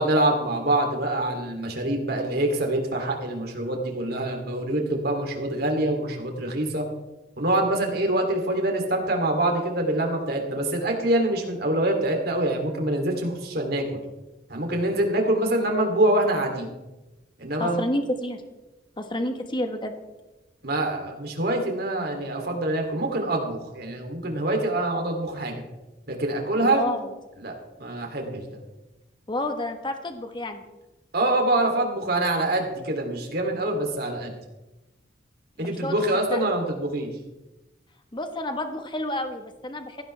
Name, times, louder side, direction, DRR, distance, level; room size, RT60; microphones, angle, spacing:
voice 1, 0.0-6.8 7.4-13.8 14.5-16.7 17.4-17.8 20.6-25.6 26.1-26.8 27.4-27.5 27.8-28.5 31.1-34.4 35.6-37.1, right 1 dB, 60° right, 2 dB, 3.0 m, -25 dB
voice 2, 17.6-18.4 19.0-19.9 26.6-27.1 29.3-30.6 35.8-35.9 36.3-36.4 38.1-40.0, left 1 dB, 25° left, 6 dB, 1.3 m, -29 dB
16.0 x 16.0 x 3.4 m, 1.0 s
head